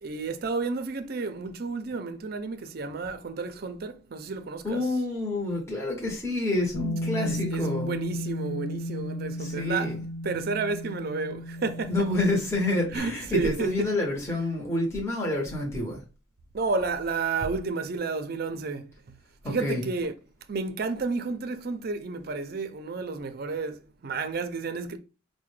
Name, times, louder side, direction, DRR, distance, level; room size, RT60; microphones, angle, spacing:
voice 1, 0.0-4.8 7.2-9.9 10.2-11.9 12.9-13.9 16.5-19.2 19.5-20.1 20.5-25.0, right 4 dB, 50° right, 0.5 m, -31 dB
voice 2, 4.6-7.9 9.4-10.0 11.9-16.0 19.4-19.9, left 2 dB, 15° left, 0.8 m, -28 dB
Bass guitar, 6.7-13.0, equal, 75° left, 0.7 m, -34 dB
4.6 x 2.1 x 3.2 m
head